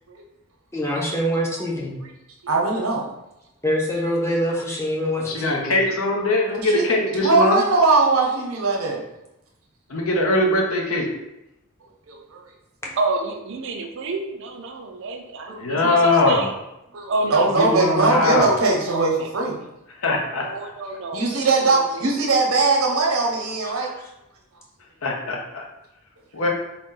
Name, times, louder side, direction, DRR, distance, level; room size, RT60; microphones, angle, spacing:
voice 1, 0.7-2.0 3.6-5.8, equal, 10° left, -3 dB, 0.6 m, -24 dB
voice 2, 2.4-3.0 5.6-5.7 6.6-9.0 12.1-12.4 15.5-15.8 16.9-19.6 21.1-23.9, right 3 dB, 80° right, 0 dB, 0.8 m, -21 dB
voice 3, 5.2-7.6 9.9-11.1 15.6-16.5 17.5-18.5 20.0-20.7 25.0-25.6 26.3-26.5, left 2 dB, 75° left, 0 dB, 0.7 m, -21 dB
voice 4, 13.0-16.5 17.1-17.5 18.6-19.3 20.4-21.4 21.6-22.3, right 3 dB, 60° right, 3 dB, 0.5 m, -29 dB
3.8 x 2.1 x 3.7 m, 0.89 s
head